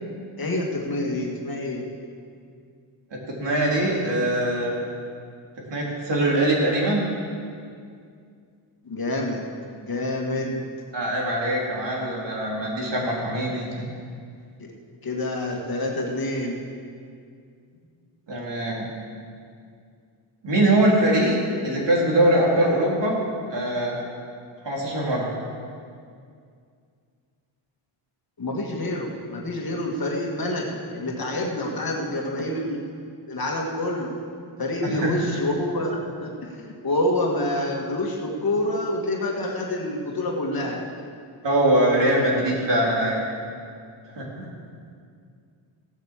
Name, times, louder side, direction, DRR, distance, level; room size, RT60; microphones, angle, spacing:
voice 1, 0.4-1.9 8.8-9.4 9.8-10.7 15.0-16.6 28.4-33.0 33.3-34.2 34.6-40.8 42.0-42.2 42.5-42.6, left 1 dB, 45° left, 0 dB, 2.2 m, -27 dB
voice 2, 3.1-4.7 5.7-7.0 10.9-13.7 18.3-18.9 20.4-21.4 21.6-23.2 23.5-24.0 24.6-25.3 34.8-35.1 41.4-43.2 44.1-44.5, right 1 dB, 55° right, -4 dB, 3.7 m, -22 dB
16.0 x 8.3 x 7.5 m, 2.3 s
wide cardioid pair, 120°, 49 cm